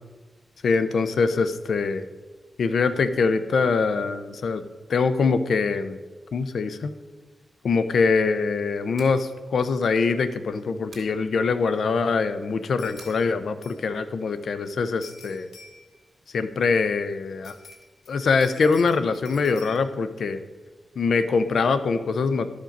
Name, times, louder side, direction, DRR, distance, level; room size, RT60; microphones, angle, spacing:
voice 1, 0.6-2.0 2.6-4.6 4.9-6.0 6.3-6.9 7.6-15.5 16.3-17.5 18.1-20.4 21.0-22.5, left 4 dB, 70° left, 11 dB, 0.5 m, -23 dB
sound 1, 8.9-9.2 10.9-11.2 13.0-13.2, right 4 dB, 70° right, 2.0 m, -47 dB
sound 2, 10.5-10.6 10.9-11.0 12.8-13.3 13.6-13.9 15.0-16.0 17.4-19.8, left 3 dB, 90° left, 1.1 m, -48 dB
12.0 x 5.1 x 5.2 m, 1.3 s
wide cardioid pair, 125°, 0 cm